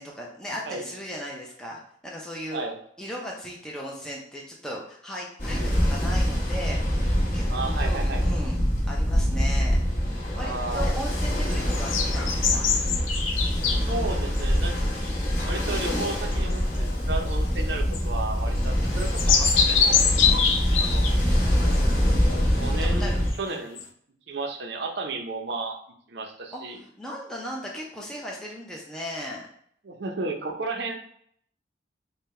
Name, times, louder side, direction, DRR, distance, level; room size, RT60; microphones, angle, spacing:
voice 1, 0.0-2.7 3.0-8.6 8.9-9.8 10.3-12.6 20.2-20.6 22.8-23.6 26.5-29.5, equal, 5° left, -3 dB, 0.5 m, -37 dB
Ocean, 5.4-23.3, equal, 40° left, 1.1 m, -24 dB
voice 2, 7.5-8.2 10.3-10.9 13.9-14.8 15.4-20.1 20.8-21.2 22.6-23.1 23.4-23.8 24.3-25.8 26.1-26.8 29.8-30.9, right 3 dB, 60° right, 4 dB, 0.6 m, -33 dB
sound 1, 10.7-13.9 14.3-14.4 14.9-16.9 17.3-17.4 17.6-17.7 17.9-18.0 19.0-21.1 21.6-21.9 22.3-22.4 23.3-23.4 23.8-23.9, left 6 dB, 90° left, 0.5 m, -25 dB
3.7 x 2.2 x 4.1 m, 0.65 s
head